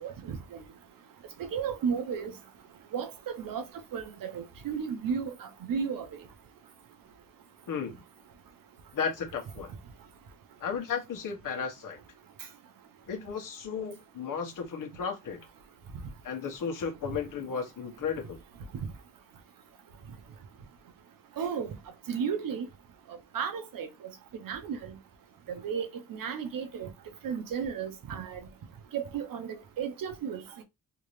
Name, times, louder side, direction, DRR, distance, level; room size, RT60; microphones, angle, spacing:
voice 1, 0.0-0.4 1.5-2.3 2.9-3.6 3.9-6.1 21.4-21.7 22.1-22.6 23.3-23.9 24.4-24.9 25.6-26.9 27.2-28.4 28.9-30.4, right 7 dB, 90° right, 1.0 m, -33 dB
voice 2, 7.7-8.0 8.9-9.7 10.6-12.0 13.1-15.4 16.2-18.4, left 6 dB, 75° left, 1.3 m, -34 dB
3.6 x 2.9 x 3.2 m
wide cardioid pair, 140°, 33 cm